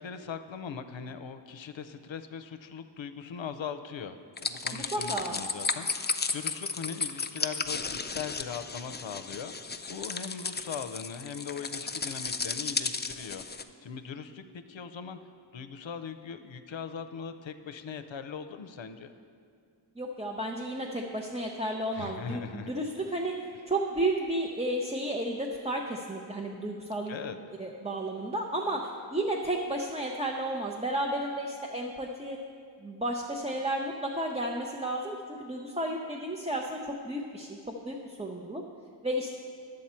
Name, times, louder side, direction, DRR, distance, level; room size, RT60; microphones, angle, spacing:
voice 1, 0.0-13.5 13.8-15.2 15.5-19.1 21.9-22.7 27.1-27.4, left 6 dB, 85° left, 9 dB, 0.5 m, -40 dB
sound 1, 4.4-13.6, left 4 dB, 25° left, 0.4 m, -34 dB
voice 2, 4.9-5.3 20.0-23.4 23.7-27.2 27.6-32.4 32.8-38.6 39.0-39.3, right 1 dB, 15° right, 0 dB, 0.6 m, -32 dB
10.5 x 7.7 x 4.3 m, 2.3 s
wide cardioid pair, 50°, 44 cm